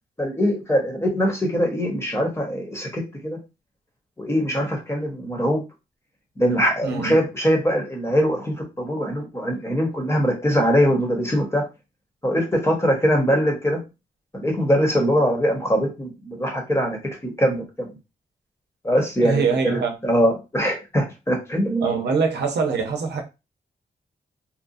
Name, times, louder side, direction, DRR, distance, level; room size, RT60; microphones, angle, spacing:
voice 1, 0.2-3.4 4.2-5.6 6.4-11.7 12.2-13.8 14.3-17.9 18.8-22.0, equal, 15° left, 1.1 m, -22 dB
voice 2, 6.8-7.1 19.2-19.9 21.8-23.2, right 5 dB, 85° right, 0.7 m, -23 dB
2.8 x 2.4 x 2.6 m
cardioid pair, 80°, 17 cm